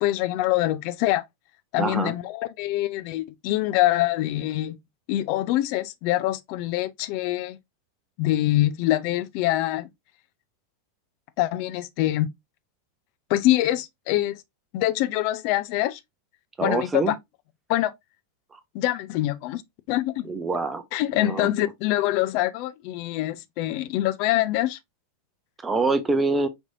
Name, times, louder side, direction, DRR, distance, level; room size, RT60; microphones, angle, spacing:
voice 1, 0.0-1.2 1.7-4.8 5.1-7.6 8.2-9.9 11.4-12.3 13.3-14.4 14.7-16.0 16.6-17.1 17.7-17.9 18.7-19.6 19.9-20.3 20.9-24.8, left 15 dB, 45° left, 0.5 m, -24 dB
voice 2, 1.8-2.1 16.6-17.1 18.5-18.6 20.3-20.8 21.2-21.5 25.6-26.5, right 3 dB, 15° right, 0.7 m, -25 dB
5.2 x 3.1 x 2.6 m
figure-of-eight pair, 90°, 0 cm